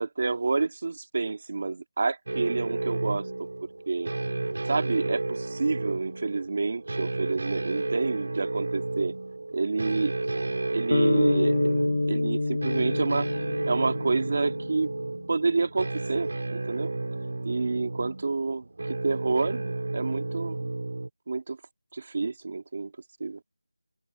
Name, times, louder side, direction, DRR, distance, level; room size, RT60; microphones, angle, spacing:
voice 1, 0.0-3.3 3.9-4.1 4.7-9.1 9.5-10.1 10.7-11.6 12.1-13.3 13.7-14.9 15.3-16.9 17.5-18.7 19.0-20.7 21.3-21.6 21.9-22.9 23.2-23.4, right 3 dB, 35° right, 2.0 m, -28 dB
sound 1, 2.3-21.1, right 2 dB, 55° right, 5.7 m, -32 dB
sound 2, 10.9-15.2, left 2 dB, 55° left, 1.2 m, -27 dB
open air
figure-of-eight pair, 175°, 0 cm